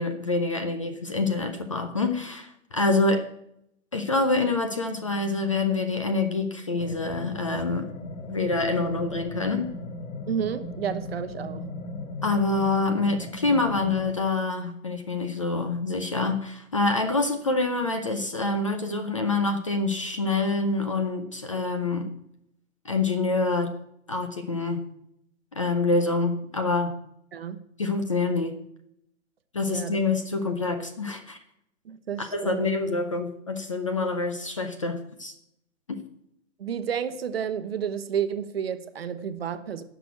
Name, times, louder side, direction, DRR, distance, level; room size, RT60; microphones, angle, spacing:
voice 1, 0.0-3.3 3.9-7.9 8.3-9.7 12.2-22.2 22.8-23.7 24.1-24.8 25.5-27.0 27.8-28.6 29.5-31.4 32.2-35.3 35.9-36.0, left 3 dB, 25° left, 7 dB, 0.5 m, -26 dB
sound 1, 6.8-14.1, left 2 dB, 80° left, 1.8 m, -37 dB
voice 2, 10.3-11.7 27.3-27.6 29.7-30.0 31.8-32.6 36.6-39.8, right 8 dB, 50° right, 10 dB, 1.0 m, -31 dB
11.0 x 6.1 x 8.1 m, 0.75 s
hypercardioid pair, 170°, 39 cm